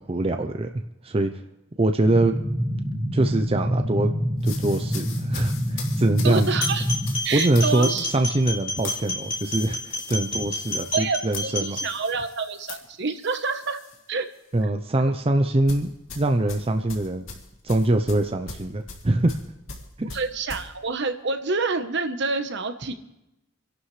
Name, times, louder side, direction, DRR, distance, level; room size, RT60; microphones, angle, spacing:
voice 1, 0.1-1.3 1.8-2.3 3.1-4.1 4.4-6.5 7.3-11.8 14.5-17.3 17.6-19.4, right 1 dB, 30° right, 6 dB, 0.6 m, -23 dB
sound 1, 2.1-7.2, equal, 5° left, 1.6 m, -26 dB
sound 2, 4.4-14.0 14.3-14.6 15.7-20.7, left 5 dB, 90° left, 2.5 m, -41 dB
voice 2, 6.2-6.9 7.2-8.1 10.9-13.8 14.1-14.3 14.6-14.7 15.0-15.1 20.1-22.9, right 4 dB, 60° right, 8 dB, 1.0 m, -27 dB
sound 3, 6.5-11.9, left 2 dB, 35° left, 3.8 m, -30 dB
29.0 x 11.5 x 3.2 m, 0.92 s
head